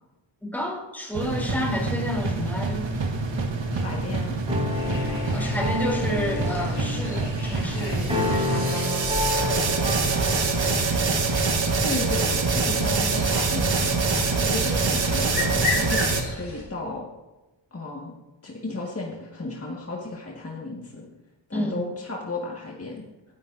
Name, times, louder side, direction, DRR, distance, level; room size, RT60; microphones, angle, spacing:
voice 1, 0.4-2.9 5.3-9.1 10.6-11.3 21.5-21.8, equal, 5° left, -3 dB, 3.7 m, -30 dB
sound 1, 1.1-16.2, right 3 dB, 70° right, 1.7 m, -25 dB
voice 2, 3.7-4.4 11.8-17.1 17.7-18.1 18.4-21.0 21.5-23.0, left 2 dB, 30° left, -2 dB, 2.0 m, -34 dB
sound 2, 4.5-10.6, left 3 dB, 15° right, 5.0 m, -30 dB
sound 3, 4.7-16.6, left 3 dB, 85° left, 4.0 m, -36 dB
18.0 x 10.5 x 2.7 m, 1.1 s
wide cardioid pair, 80°, 46 cm